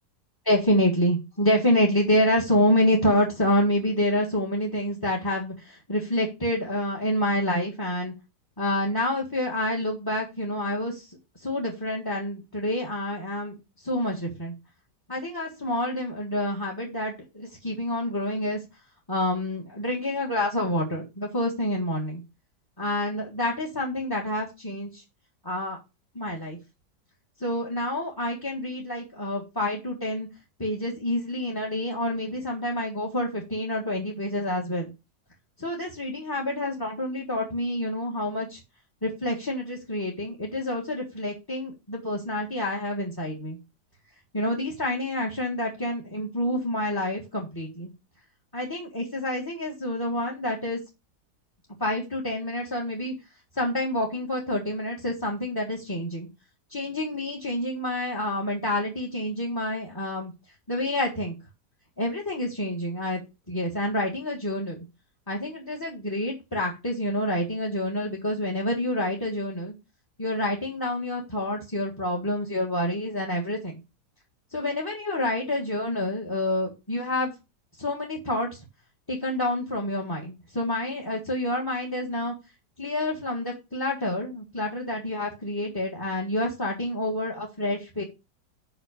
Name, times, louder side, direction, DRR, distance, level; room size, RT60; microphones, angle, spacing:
voice 1, 0.5-8.1 8.6-13.6 13.8-14.5 15.1-18.6 19.1-22.2 22.8-25.0 25.4-25.8 26.2-26.6 27.4-30.3 30.6-34.9 35.6-38.6 39.0-43.6 44.3-47.9 48.5-50.8 51.8-53.1 53.5-56.3 56.7-60.3 60.7-61.4 62.0-63.2 63.5-64.8 65.3-69.7 70.2-73.8 74.5-77.3 77.8-78.6 79.1-82.3 82.8-88.0, left 1 dB, 15° left, 1 dB, 1.6 m, -28 dB
6.0 x 5.8 x 6.8 m, 0.26 s
omnidirectional pair, 1.8 m